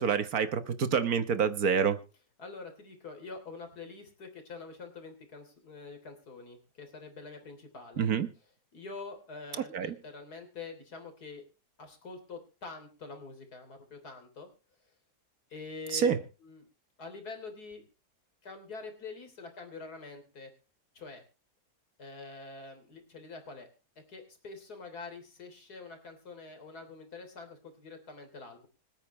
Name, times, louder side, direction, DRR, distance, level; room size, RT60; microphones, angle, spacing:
voice 1, 0.0-2.0 8.0-8.3 9.7-9.9 15.9-16.2, right 7 dB, 65° right, 1.7 m, -27 dB
voice 2, 2.4-8.1 8.7-11.4 11.8-14.5 15.5-16.7 17.0-17.8 18.4-20.5 20.9-21.2 22.0-23.7 24.0-28.7, left 4 dB, 75° left, 3.8 m, -45 dB
25.5 x 9.1 x 3.1 m
omnidirectional pair, 1.7 m